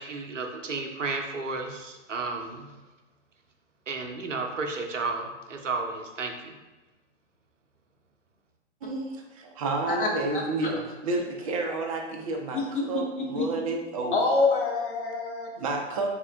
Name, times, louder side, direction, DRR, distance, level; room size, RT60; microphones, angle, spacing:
voice 1, 0.0-2.7 3.9-6.6, right 3 dB, 85° right, 4 dB, 0.6 m, -33 dB
voice 2, 8.8-14.2 15.6-16.1, right 2 dB, 30° right, 2 dB, 0.4 m, -30 dB
voice 3, 12.5-12.9 13.3-13.5 14.1-15.5, left 3 dB, 45° left, 0 dB, 0.7 m, -26 dB
3.5 x 2.2 x 3.4 m, 1.1 s
figure-of-eight pair, 115°, 36 cm